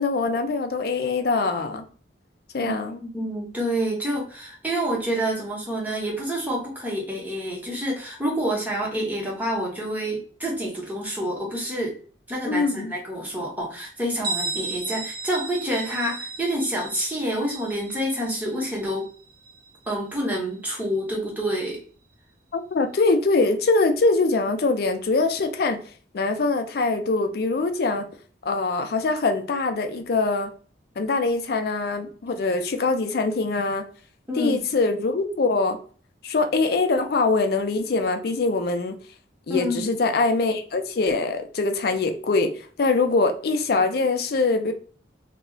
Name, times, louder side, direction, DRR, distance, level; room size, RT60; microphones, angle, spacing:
voice 1, 0.0-1.8 2.5-3.0 12.5-12.9 22.5-25.8 26.1-28.0 28.4-30.5 31.0-33.8 34.4-35.8 36.2-38.9 39.5-44.7, left 3 dB, 50° left, 0.4 m, -23 dB
voice 2, 3.1-12.0 12.3-19.1 19.9-21.8 34.3-34.6 39.5-40.0, equal, 10° right, 0.8 m, -28 dB
Bell, 14.2-19.8, right 3 dB, 55° right, 0.8 m, -34 dB
2.3 x 2.0 x 3.6 m
head